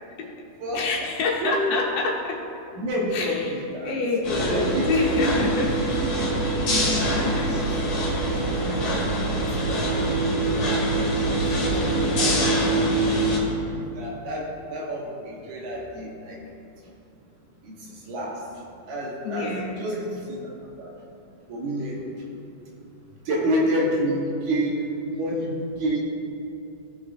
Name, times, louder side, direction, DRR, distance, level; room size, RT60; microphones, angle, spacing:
voice 1, 0.7-2.4 3.1-3.5 3.8-6.0 7.2-7.5 19.2-19.9, left 3 dB, 85° left, -2 dB, 2.9 m, -27 dB
voice 2, 2.8-3.9 4.5-5.0 5.2-5.5 5.9-6.3 6.6-7.6 8.3-8.4 8.6-8.8 9.5-9.9 10.3-10.7 11.3-12.6 13.7-16.4 17.6-17.8 18.1-18.4 18.9-20.4 20.8-20.9 21.5-22.0 23.3-24.8 25.1-26.0, equal, 70° right, -3 dB, 2.4 m, -29 dB
sound 1, 4.2-13.4, right 1 dB, 55° left, 2.7 m, -24 dB
16.0 x 6.0 x 2.5 m, 2.6 s
omnidirectional pair, 3.9 m